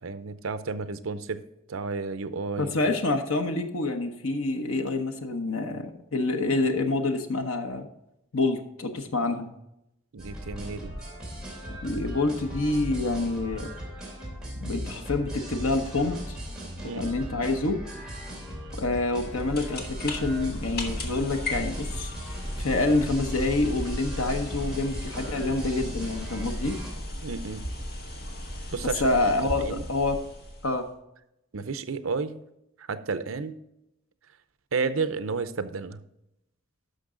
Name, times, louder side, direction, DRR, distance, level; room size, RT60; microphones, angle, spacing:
voice 1, 0.0-2.7 10.1-11.0 16.8-17.2 27.2-27.7 28.7-29.1 29.6-29.9 31.5-32.4 32.8-33.6 34.7-36.0, right 4 dB, 80° right, 0.7 m, -32 dB
voice 2, 2.6-7.9 8.3-9.5 11.8-13.7 14.6-16.4 17.0-17.8 18.8-22.1 22.6-26.8 29.0-30.2 30.6-30.9, left 2 dB, 80° left, 1.0 m, -27 dB
sound 1, 10.2-26.9, equal, 5° right, 2.9 m, -38 dB
sound 2, 19.1-30.9, left 1 dB, 50° left, 1.7 m, -36 dB
12.0 x 6.1 x 3.8 m
head